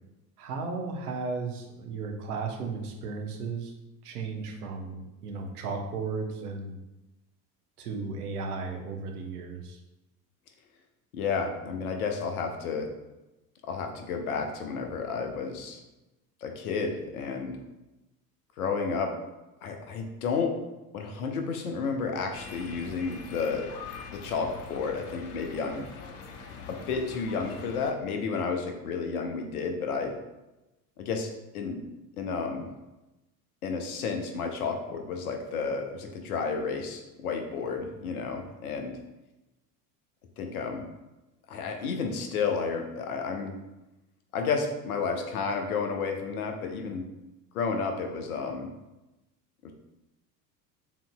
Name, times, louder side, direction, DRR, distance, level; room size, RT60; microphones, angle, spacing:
voice 1, 0.4-3.7 4.0-6.8 7.8-9.8, right 4 dB, 65° right, 2 dB, 0.9 m, -35 dB
voice 2, 11.1-12.9 13.6-15.8 16.4-17.6 18.6-19.2 19.6-20.6 20.9-23.7 24.1-25.9 26.7-30.2 31.0-31.3 31.5-31.9 32.2-32.7 33.6-39.0 40.4-40.9 41.5-43.6 44.3-47.1 47.5-48.7 49.6-49.7, left 5 dB, 60° left, 4 dB, 0.8 m, -31 dB
sound 1, 22.3-27.9, left 5 dB, 30° left, 0.5 m, -43 dB
6.9 x 2.8 x 2.2 m, 1.0 s
figure-of-eight pair, 70°, 49 cm